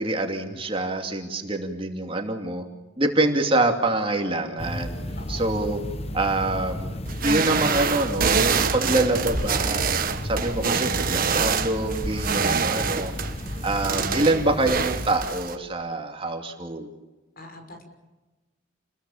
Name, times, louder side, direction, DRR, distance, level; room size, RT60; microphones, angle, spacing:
voice 1, 0.0-2.6 3.0-5.0 5.3-5.8 6.1-7.0 7.2-9.8 10.2-13.1 13.6-16.9, right 2 dB, 30° right, 3 dB, 2.6 m, -25 dB
sound 1, 4.6-15.3, left 1 dB, 30° left, 1.2 m, -33 dB
voice 2, 5.2-5.6 12.7-13.3 17.4-17.9, left 1 dB, 50° left, 5 dB, 6.1 m, -43 dB
sound 2, 7.0-15.5, right 5 dB, 45° right, 1.5 m, -26 dB
30.0 x 21.5 x 7.2 m, 1.2 s
head